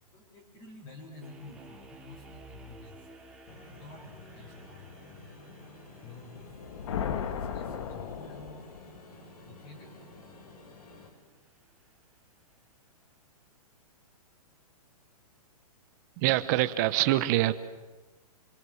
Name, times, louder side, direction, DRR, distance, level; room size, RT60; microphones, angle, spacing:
voice 1, 0.1-3.1 3.7-5.3 6.0-6.7 7.3-8.9 9.4-10.0, left 3 dB, 25° left, -2 dB, 4.9 m, -50 dB
sound 1, 1.2-12.3, right 2 dB, 5° right, 2.9 m, -56 dB
sound 2, 3.4-11.1, left 2 dB, 80° left, 7.9 m, -51 dB
sound 3, 6.4-9.0, left 8 dB, 50° left, 2.0 m, -36 dB
voice 2, 16.2-17.5, right 16 dB, 30° right, 12 dB, 1.1 m, -25 dB
26.5 x 25.0 x 7.9 m, 1.2 s
hypercardioid pair, 165°, 19 cm